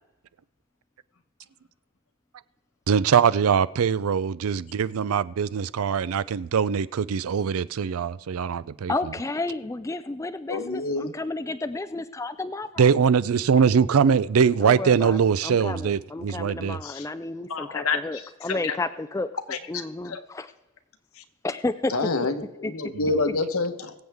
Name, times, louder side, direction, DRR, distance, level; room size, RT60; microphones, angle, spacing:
voice 1, 2.9-8.9 12.8-16.8, right 6 dB, 70° right, 0.4 m, -22 dB
voice 2, 8.9-12.9 14.6-20.5 21.4-22.1 22.6-22.9, left 2 dB, 15° left, 0.3 m, -32 dB
voice 3, 10.5-11.1 16.8-17.1 17.5-18.0 18.5-18.8 19.5-20.2 21.9-23.9, left 3 dB, 70° left, 1.1 m, -28 dB
22.5 x 7.8 x 3.5 m
head